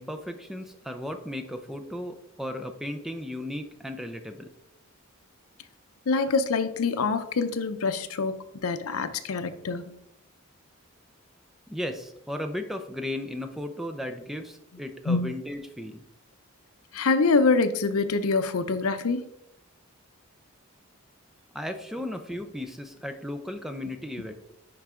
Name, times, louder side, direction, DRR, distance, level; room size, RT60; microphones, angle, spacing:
voice 1, 0.0-4.5 11.7-16.0 21.5-24.3, left 1 dB, ahead, 6 dB, 0.5 m, -35 dB
voice 2, 6.1-9.9 15.1-15.3 16.9-19.3, left 4 dB, 90° left, 11 dB, 0.6 m, -25 dB
10.5 x 4.6 x 3.7 m, 0.82 s
head